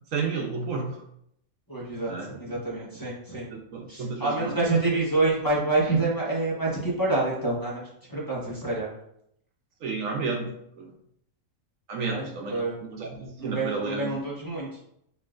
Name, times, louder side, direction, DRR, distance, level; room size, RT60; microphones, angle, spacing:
voice 1, 0.1-1.0 2.1-2.3 2.8-2.9 3.5-4.6 9.8-10.9 11.9-14.1, right 4 dB, 80° right, 3 dB, 1.1 m, -32 dB
voice 2, 1.7-3.5 3.9-7.8 8.1-8.9 12.1-12.2 12.5-12.7 13.4-14.7, right 2 dB, 15° left, -7 dB, 1.1 m, -27 dB
6.7 x 3.0 x 2.5 m, 0.74 s
omnidirectional pair, 1.4 m